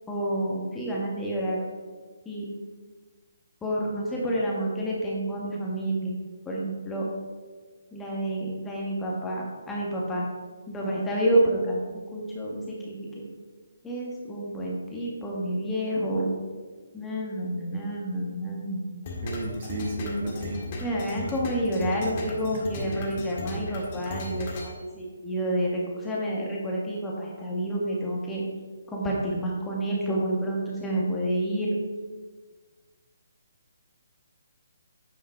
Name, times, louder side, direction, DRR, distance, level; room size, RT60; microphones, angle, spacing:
voice 1, 0.1-1.6 2.2-2.4 3.6-6.1 6.4-7.0 7.9-10.3 10.7-11.8 12.1-13.1 13.8-16.3 16.9-18.9 20.8-28.4 28.9-31.7, right 1 dB, 10° left, -4 dB, 1.7 m, -29 dB
sound 1, 19.0-24.7, left 2 dB, 35° left, 1.8 m, -36 dB
voice 2, 19.2-20.6 22.5-23.0, right 1 dB, 45° right, 1 dB, 1.6 m, -33 dB
9.5 x 5.3 x 4.6 m, 1.4 s
hypercardioid pair, 150°, 0 cm